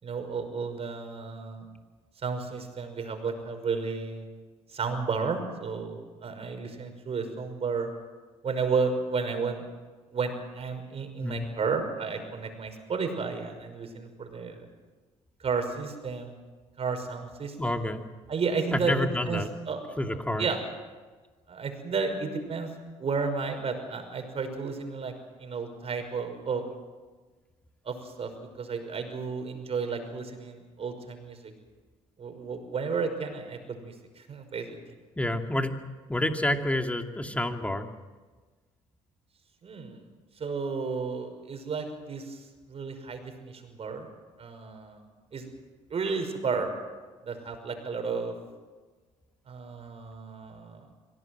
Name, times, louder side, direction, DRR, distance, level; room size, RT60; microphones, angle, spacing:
voice 1, 0.0-1.7 2.2-4.2 4.7-7.9 8.4-9.6 10.1-14.7 15.4-16.4 16.8-17.8 18.3-20.0 20.4-20.6 21.5-22.7 23.0-25.1 25.4-26.6 27.8-28.3 28.6-31.5 32.2-34.8 39.6-40.0 40.4-44.1 44.4-45.0 45.3-45.5 45.9-46.7 47.2-48.3 49.5-50.8, right 5 dB, 45° right, 6 dB, 5.7 m, -32 dB
voice 2, 17.6-18.0 18.7-19.5 20.0-20.5 35.2-35.8 36.1-37.9, left 1 dB, 10° left, 5 dB, 2.6 m, -28 dB
24.5 x 18.0 x 8.0 m, 1.3 s
supercardioid pair, 70°, 14 cm